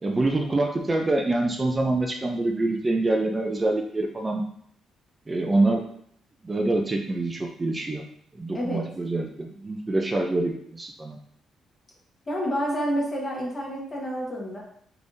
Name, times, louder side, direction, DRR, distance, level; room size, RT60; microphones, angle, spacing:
voice 1, 0.0-4.4 5.3-5.8 6.4-8.0 8.3-11.2, right 2 dB, 25° right, 2 dB, 0.4 m, -25 dB
voice 2, 8.5-8.9 12.3-14.6, equal, 35° left, -3 dB, 1.3 m, -29 dB
3.4 x 3.3 x 2.6 m, 0.66 s
cardioid pair, 90°, 0 cm